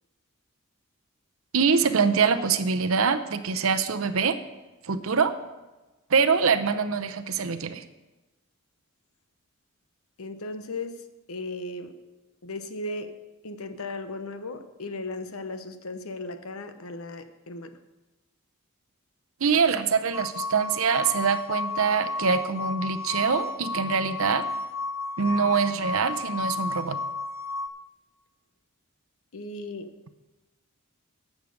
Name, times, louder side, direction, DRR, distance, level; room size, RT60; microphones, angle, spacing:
voice 1, 1.5-4.4 4.8-5.3 6.1-7.8 19.4-24.5 25.2-27.0, right 5 dB, 75° right, 10 dB, 0.7 m, -24 dB
voice 2, 10.2-12.0 12.4-13.2 13.4-17.7 29.3-29.9, left 2 dB, 80° left, 9 dB, 1.0 m, -36 dB
sound 1, 20.1-27.7, left 3 dB, 10° right, 0.6 m, -32 dB
10.5 x 7.5 x 6.4 m, 1.1 s
head